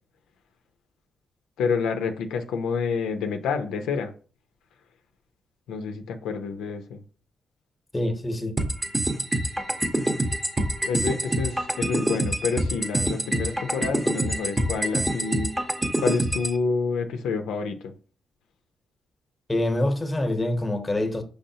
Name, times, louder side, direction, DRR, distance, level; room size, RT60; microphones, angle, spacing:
voice 1, 1.6-4.1 5.7-7.0 10.9-15.6 16.0-17.9, left 5 dB, 90° left, 0.5 m, -28 dB
voice 2, 7.9-8.5 19.5-21.2, left 1 dB, 20° left, 0.9 m, -25 dB
sound 1, 8.6-16.6, right 1 dB, 20° right, 0.8 m, -26 dB
5.4 x 3.4 x 2.8 m
cardioid pair, 65°, 0 cm